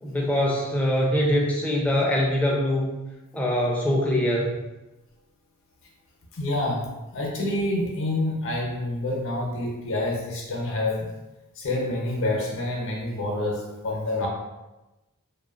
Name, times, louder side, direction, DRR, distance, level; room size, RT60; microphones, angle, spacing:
voice 1, 0.0-2.9 3.3-4.5, equal, 5° left, -3 dB, 0.4 m, -23 dB
voice 2, 6.3-11.1 11.6-14.3, left 1 dB, 60° left, -1 dB, 0.6 m, -27 dB
2.8 x 2.2 x 2.3 m, 1.0 s
head